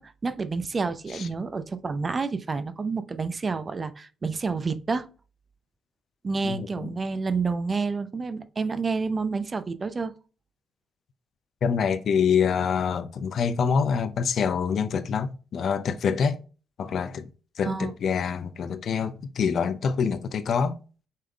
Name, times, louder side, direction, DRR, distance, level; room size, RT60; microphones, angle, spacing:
voice 1, 0.0-5.1 6.2-10.1 17.6-17.9, right 4 dB, 35° right, 0.6 m, -29 dB
voice 2, 6.4-6.9 11.6-16.4 16.8-17.3 17.6-20.8, left 6 dB, 55° left, 0.5 m, -26 dB
6.5 x 3.6 x 2.2 m
hypercardioid pair, 45°, 0 cm